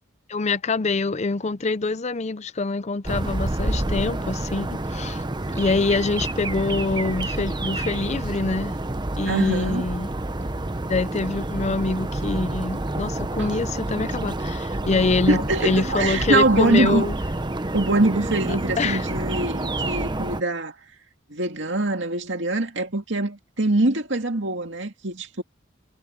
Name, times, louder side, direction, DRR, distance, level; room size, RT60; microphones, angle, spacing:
voice 1, 0.3-5.2 5.5-8.7 9.2-10.1 10.9-17.1 18.8-19.0, left 3 dB, 35° left, 0.6 m, -25 dB
sound 1, 3.0-20.4, right 2 dB, 20° right, 0.9 m, -28 dB
voice 2, 9.3-9.9 13.4-13.5 15.3-17.1 17.7-20.7 21.3-25.4, right 2 dB, 65° right, 2.5 m, -23 dB
head